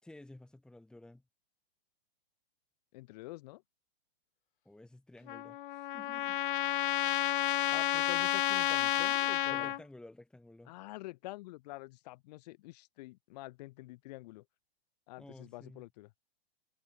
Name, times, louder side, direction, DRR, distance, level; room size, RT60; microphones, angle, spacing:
voice 1, 0.0-1.2 4.7-6.4 9.5-10.7 15.2-15.8, left 1 dB, 5° left, 5.5 m, -53 dB
voice 2, 2.9-3.6 7.7-9.7 10.7-14.5 15.1-16.1, left 20 dB, 40° left, 7.3 m, -47 dB
Trumpet, 5.3-9.8, left 14 dB, 60° left, 0.5 m, -31 dB
hypercardioid pair, 155°, 30 cm